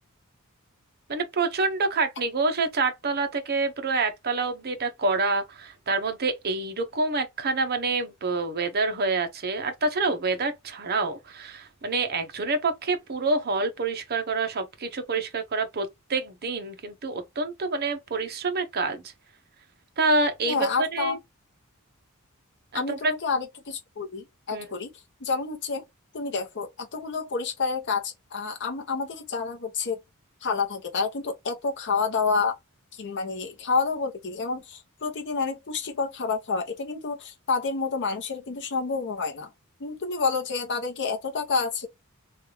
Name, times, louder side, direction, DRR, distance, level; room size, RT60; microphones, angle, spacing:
voice 1, 1.1-19.1 20.0-21.2 22.7-23.1 24.5-24.7, right 3 dB, 45° right, 0.8 m, -27 dB
voice 2, 20.4-21.2 22.7-24.9 25.2-25.8 26.1-30.0 30.4-32.6 32.9-39.5 39.8-41.9, left 4 dB, 55° left, 0.7 m, -29 dB
3.4 x 2.3 x 2.9 m
head